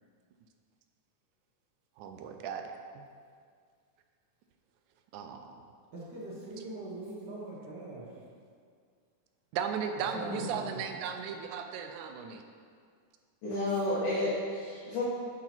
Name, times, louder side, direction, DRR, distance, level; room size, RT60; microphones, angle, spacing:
voice 1, 2.0-2.6 5.1-5.4 9.5-12.4, right 7 dB, 80° right, 6 dB, 1.9 m, -36 dB
voice 2, 5.9-8.2 9.9-10.9, right 2 dB, 45° right, -5 dB, 1.6 m, -42 dB
voice 3, 10.1-10.5 13.4-15.0, left 1 dB, 85° left, -11 dB, 3.3 m, -32 dB
11.5 x 4.9 x 4.4 m, 2.1 s
omnidirectional pair, 3.6 m